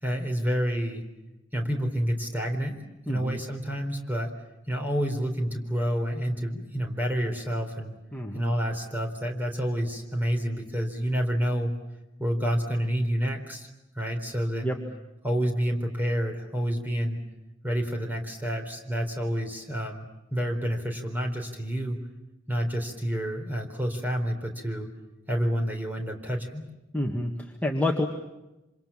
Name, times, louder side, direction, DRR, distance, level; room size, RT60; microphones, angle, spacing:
voice 1, 0.0-1.0 1.5-2.8 3.1-4.3 4.7-7.9 8.3-11.7 12.2-13.7 13.9-14.7 15.2-17.2 17.6-20.0 20.3-22.0 22.5-24.9 25.3-26.6, equal, 10° right, 3 dB, 4.1 m, -28 dB
voice 2, 3.1-3.4 8.1-8.5 14.6-14.8 26.9-28.1, left 1 dB, 10° left, 0 dB, 1.8 m, -28 dB
27.5 x 27.0 x 7.4 m, 1.0 s
head